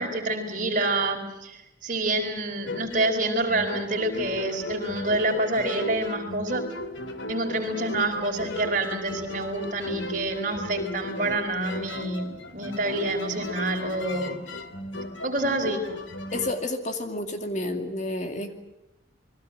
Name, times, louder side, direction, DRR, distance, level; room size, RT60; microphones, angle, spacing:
voice 1, 0.0-6.6 7.3-14.3 15.2-15.8, right 2 dB, 45° right, 3 dB, 5.0 m, -27 dB
sound 1, 2.7-16.5, left 2 dB, 85° left, 2.5 m, -36 dB
voice 2, 16.3-18.6, left 1 dB, 40° left, 6 dB, 2.3 m, -30 dB
29.5 x 22.0 x 7.5 m, 0.91 s
head